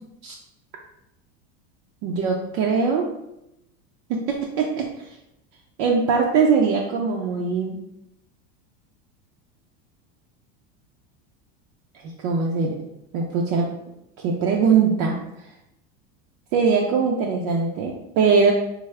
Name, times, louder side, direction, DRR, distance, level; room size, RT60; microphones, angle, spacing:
voice 1, 2.0-3.1 4.1-4.9 5.8-7.8 12.2-12.8 13.1-13.7 14.2-15.2 16.5-18.5, right 5 dB, 55° right, 0 dB, 0.5 m, -21 dB
3.5 x 2.0 x 3.2 m, 0.84 s
supercardioid pair, 120°, 35 cm